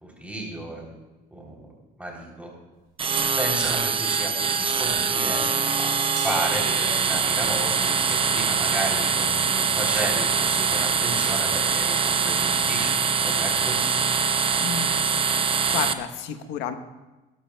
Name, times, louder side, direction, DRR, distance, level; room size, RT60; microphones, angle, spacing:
voice 1, 0.0-0.9 1.3-1.7 2.0-2.5 3.4-12.9 13.2-13.8, right 1 dB, 10° right, -2 dB, 3.2 m, -33 dB
sound 1, 2.8-7.7, right 6 dB, 80° right, 4.3 m, -41 dB
sound 2, 3.0-15.9, right 6 dB, 30° right, 0.7 m, -23 dB
voice 2, 14.6-16.7, left 9 dB, 90° left, 9 dB, 1.0 m, -32 dB
19.0 x 12.5 x 2.2 m, 1.1 s
cardioid pair, 110°, 17 cm